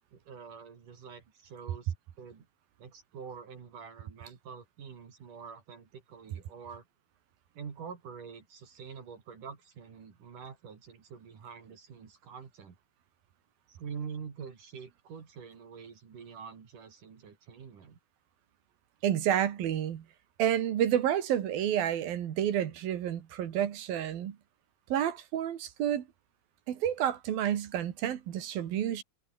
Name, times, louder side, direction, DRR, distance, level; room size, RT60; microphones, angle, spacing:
voice 1, 0.1-2.5 2.8-6.8 7.5-12.8 13.7-18.0, right 6 dB, 60° right, 4.7 m, -46 dB
voice 2, 19.0-20.1 20.4-24.4 24.9-26.0 26.7-29.0, right 10 dB, 75° right, 3.6 m, -30 dB
omnidirectional pair, 4.3 m